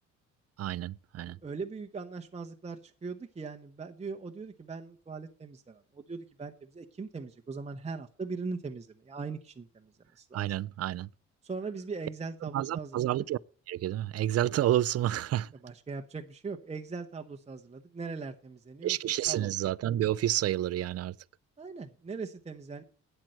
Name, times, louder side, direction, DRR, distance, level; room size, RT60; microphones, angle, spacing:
voice 1, 0.6-1.4 10.3-11.1 12.4-13.4 13.7-15.5 18.8-21.1, right 13 dB, 55° right, 0.5 m, -29 dB
voice 2, 1.2-10.5 11.4-13.1 15.6-19.0 19.3-19.5 21.6-22.8, right 4 dB, 20° right, 0.9 m, -40 dB
9.1 x 7.6 x 6.4 m
cardioid pair, 90°, 30 cm